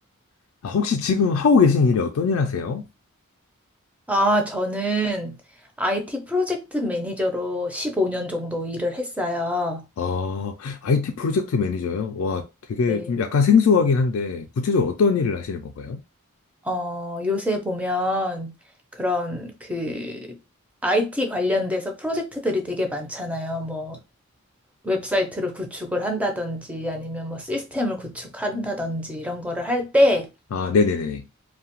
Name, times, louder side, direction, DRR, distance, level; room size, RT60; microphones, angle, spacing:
voice 1, 0.6-2.9 10.0-16.0 30.5-31.2, left 5 dB, 65° left, 0.3 m, -21 dB
voice 2, 4.1-5.4 5.8-9.8 12.9-13.1 16.6-18.5 19.0-20.4 20.8-24.0 24.8-30.3, left 1 dB, 5° right, 0.4 m, -25 dB
2.7 x 2.1 x 2.9 m
head